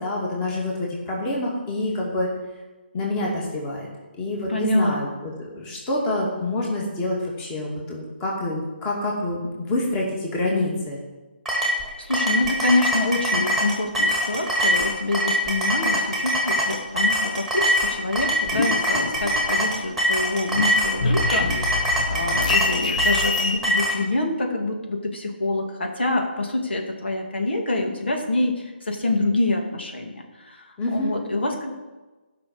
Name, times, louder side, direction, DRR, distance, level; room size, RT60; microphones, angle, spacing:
voice 1, 0.0-2.3 2.9-3.9 4.1-11.0 30.8-31.2, left 2 dB, 20° left, -3 dB, 2.4 m, -27 dB
voice 2, 4.5-5.0 12.0-31.7, left 2 dB, 75° left, 2 dB, 2.4 m, -26 dB
sound 1, 11.5-24.0, equal, ahead, 2.0 m, -23 dB
sound 2, 18.2-19.9 20.2-23.6, left 3 dB, 45° left, 1.2 m, -27 dB
13.5 x 6.0 x 7.1 m, 1.2 s
figure-of-eight pair, 155°, 6 cm